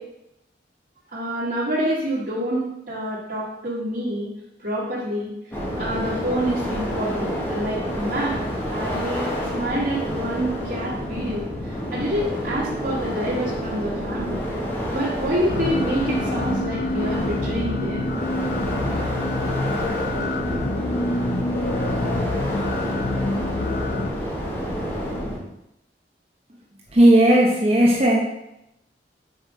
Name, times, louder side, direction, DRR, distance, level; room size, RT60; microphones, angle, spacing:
voice 1, 1.1-4.3 4.6-5.3 5.8-8.4 8.7-11.5 11.9-14.4 14.9-18.1, equal, 50° right, -10 dB, 1.7 m, -27 dB
sound 1, 5.5-25.4, equal, 10° left, 1.6 m, -28 dB
sound 2, 15.5-24.1, left 2 dB, 50° left, 0.4 m, -27 dB
voice 2, 26.9-28.2, right 1 dB, 35° right, -2 dB, 1.0 m, -15 dB
5.5 x 5.0 x 5.0 m, 0.85 s
head